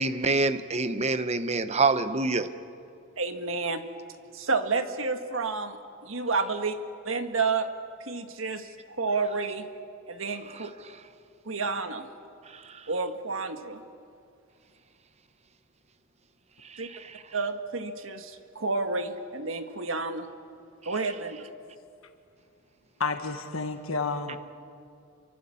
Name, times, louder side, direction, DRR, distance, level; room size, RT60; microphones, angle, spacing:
voice 1, 0.0-2.5 12.5-12.8 16.7-17.2, right 3 dB, 30° right, 11 dB, 1.0 m, -27 dB
voice 2, 3.2-3.8 4.3-6.8 7.1-7.7 8.0-9.7 10.1-10.7 11.5-12.1 12.9-13.8 16.8-16.9 17.3-20.3 20.9-21.5, right 4 dB, 75° right, 7 dB, 1.7 m, -30 dB
voice 3, 23.0-24.4, left 4 dB, 85° left, 6 dB, 1.6 m, -30 dB
29.0 x 24.5 x 7.1 m, 2.4 s
head